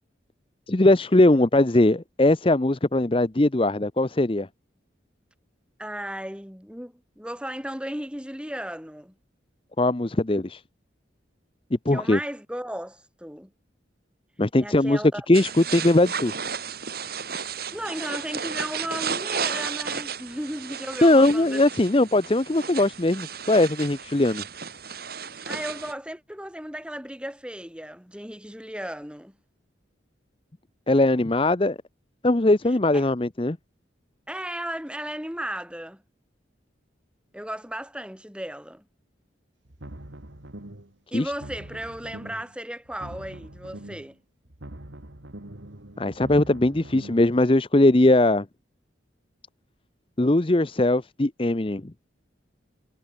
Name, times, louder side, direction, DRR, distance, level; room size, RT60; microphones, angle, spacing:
voice 1, 0.7-4.5 9.8-10.6 11.9-12.2 14.4-16.3 21.0-24.4 30.9-31.8 32.2-33.6 41.1-41.3 46.0-48.5 50.2-51.8, left 2 dB, 25° left, 0.7 m, -20 dB
voice 2, 5.8-9.2 11.9-13.5 14.6-15.3 17.7-21.6 25.3-29.4 32.9-33.0 34.3-36.0 37.3-38.8 41.1-44.2, right 1 dB, 5° right, 7.0 m, -35 dB
sound 1, 15.3-25.9, right 6 dB, 50° right, 3.9 m, -33 dB
sound 2, 39.6-40.9 41.2-42.5 42.8-44.1 44.4-47.3, right 1 dB, 75° right, 2.7 m, -43 dB
head